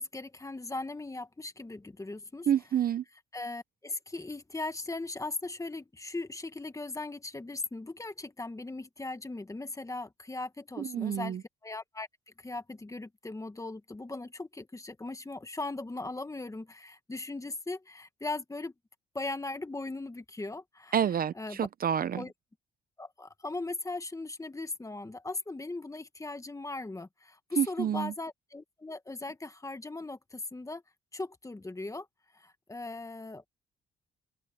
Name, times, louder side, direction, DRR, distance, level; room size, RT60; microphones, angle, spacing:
voice 1, 0.0-2.5 3.3-12.1 12.4-18.7 19.1-21.0 21.3-21.6 22.1-22.3 23.0-30.8 31.1-32.1 32.3-33.5, left 2 dB, 15° left, 1.5 m, -39 dB
voice 2, 2.5-3.0 10.8-11.4 20.9-22.2 27.6-28.1, right 9 dB, 50° right, 0.7 m, -28 dB
cardioid pair, 90°, 20 cm